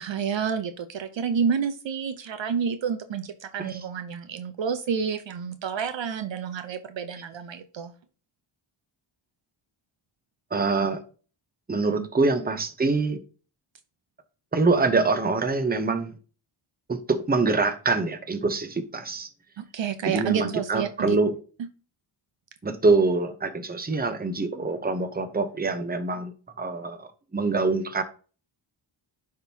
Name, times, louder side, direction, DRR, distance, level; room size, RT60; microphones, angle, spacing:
voice 1, 0.0-7.9 12.0-12.1 19.6-21.2, right 7 dB, 65° right, 0.7 m, -29 dB
voice 2, 10.5-11.0 11.7-13.2 14.5-16.2 16.9-19.3 20.1-21.4 22.6-28.0, right 3 dB, 20° right, 0.9 m, -25 dB
10.5 x 3.7 x 2.8 m
cardioid pair, 90°, 50 cm